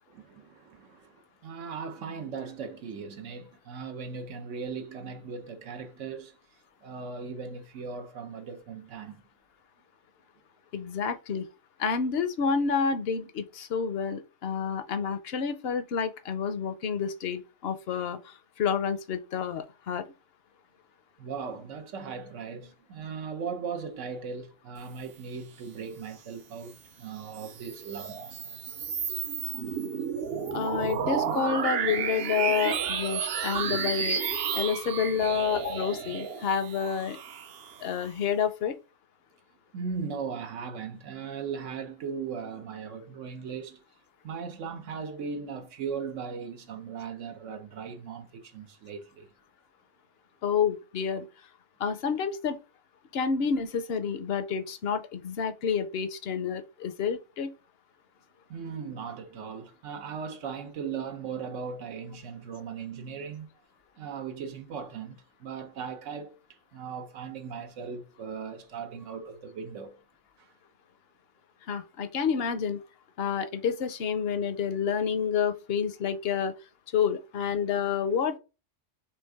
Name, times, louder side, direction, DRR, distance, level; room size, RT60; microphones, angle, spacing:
voice 1, 0.1-6.3 6.8-9.2 21.2-28.1 39.7-43.8 44.2-49.3 58.5-63.5 64.0-66.4 66.7-70.0 70.4-70.5, right 6 dB, 80° right, 1.1 m, -38 dB
voice 2, 10.7-11.4 11.8-20.1 30.5-34.2 34.5-37.2 37.8-38.7 50.4-51.3 51.8-52.6 53.1-57.5 71.7-72.8 73.2-76.5 76.9-78.4, left 6 dB, 60° left, 0.8 m, -29 dB
sound 1, 27.2-38.1, right 7 dB, 60° right, 0.8 m, -32 dB
4.5 x 3.4 x 3.5 m
omnidirectional pair, 1.3 m